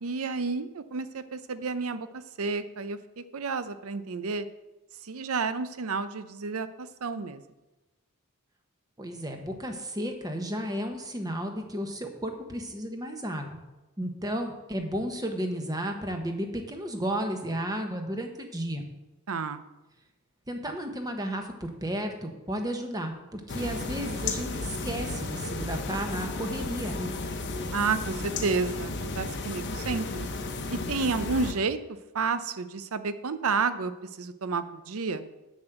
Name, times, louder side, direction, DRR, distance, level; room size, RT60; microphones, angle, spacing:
voice 1, 0.0-4.5 5.1-7.4 19.3-19.6 27.7-30.3 30.7-31.8 32.1-33.9 34.2-35.2, right 4 dB, 65° right, 12 dB, 0.6 m, -31 dB
voice 2, 9.0-13.6 14.0-18.8 20.5-27.1, equal, 15° right, 4 dB, 1.1 m, -33 dB
sound 1, 23.5-31.5, left 3 dB, 50° left, 1.0 m, -33 dB
7.3 x 6.2 x 7.8 m, 1.1 s
head